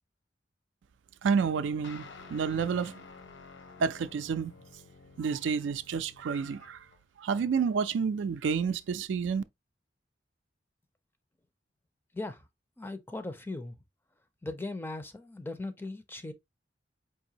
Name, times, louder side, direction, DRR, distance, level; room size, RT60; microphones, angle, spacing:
voice 1, 1.2-3.0 3.8-4.5 5.2-6.8 7.2-9.4, right 6 dB, 90° right, 0.4 m, -29 dB
sound 1, 1.8-7.0, left 4 dB, 75° left, 0.6 m, -51 dB
voice 2, 12.8-13.7 14.4-16.3, left 2 dB, 10° left, 0.4 m, -38 dB
4.8 x 2.6 x 2.8 m
head